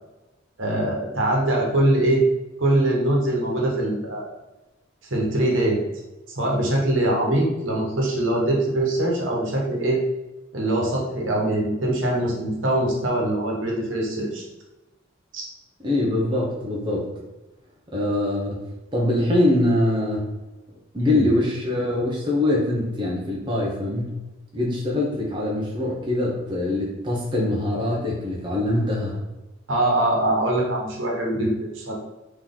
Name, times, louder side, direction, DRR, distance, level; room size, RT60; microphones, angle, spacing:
voice 1, 0.6-2.2 2.6-4.3 5.0-5.8 6.4-10.0 10.5-14.5 15.3-15.5 21.0-21.3 29.7-31.9, right 1 dB, 70° right, -2 dB, 1.2 m, -23 dB
voice 2, 15.8-17.1 17.9-18.6 18.9-20.2 20.9-24.2 24.5-29.2, left 1 dB, 25° right, -3 dB, 0.8 m, -23 dB
3.9 x 3.0 x 3.7 m, 1.0 s
head